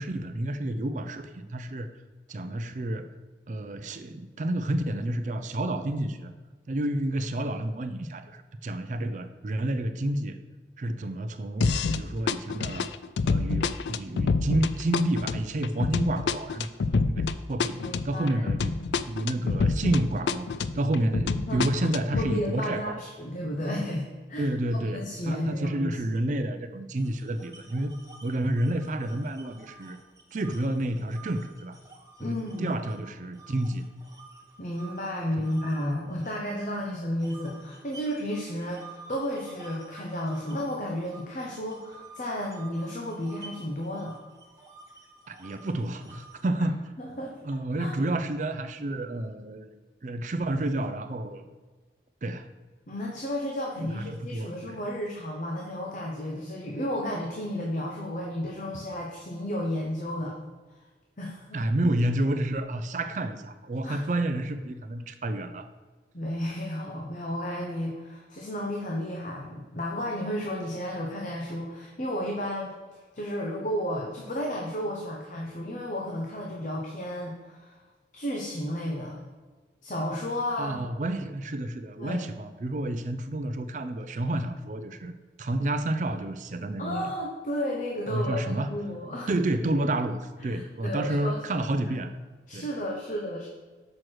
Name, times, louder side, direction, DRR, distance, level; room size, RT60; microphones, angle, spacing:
voice 1, 0.0-1.9 2.3-3.1 3.5-6.3 6.7-10.4 10.8-12.9 13.2-17.8 18.0-18.7 19.1-20.5 20.7-23.0 24.4-27.9 28.2-30.0 30.3-31.8 32.2-33.8 35.4-35.5 45.3-49.7 50.0-51.5 52.2-52.5 53.8-54.8 58.7-58.8 61.5-65.7 80.6-87.1 88.1-88.7 89.3-92.1 92.5-92.7, right 1 dB, 45° right, 9 dB, 0.4 m, -30 dB
sound 1, 11.6-12.0 12.3-20.0 20.3-22.3, left 4 dB, 85° left, 0.4 m, -27 dB
voice 2, 17.8-18.4 21.0-21.8 22.2-26.0 32.2-32.8 34.6-44.2 47.0-47.4 47.8-47.9 52.9-60.4 61.2-61.6 63.8-64.0 66.1-77.8 78.1-79.2 79.8-80.8 82.0-82.3 86.8-89.3 90.4-91.9 92.5-93.5, equal, 45° left, -1 dB, 0.8 m, -33 dB
sound 2, 27.0-33.0 33.4-36.8 37.2-46.6, right 3 dB, 20° right, 1.0 m, -50 dB
6.3 x 4.6 x 6.2 m, 1.4 s
head